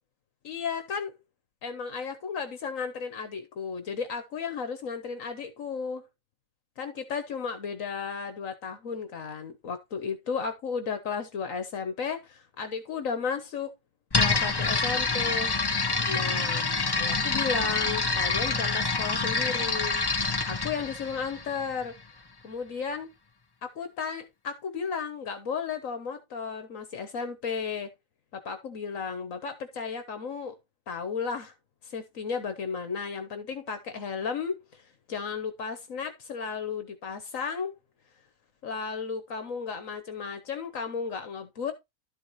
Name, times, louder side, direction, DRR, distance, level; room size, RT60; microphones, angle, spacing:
voice 1, 0.4-1.1 1.6-6.1 6.8-13.7 14.1-15.5 16.1-16.6 17.0-20.0 20.5-21.9 22.4-23.1 23.6-27.9 28.4-30.6 30.9-31.5 31.8-37.7 38.6-41.7, left 5 dB, 75° left, 1.4 m, -34 dB
sound 1, 14.1-21.9, left 4 dB, 25° left, 0.6 m, -27 dB
12.0 x 4.7 x 4.0 m
omnidirectional pair, 1.4 m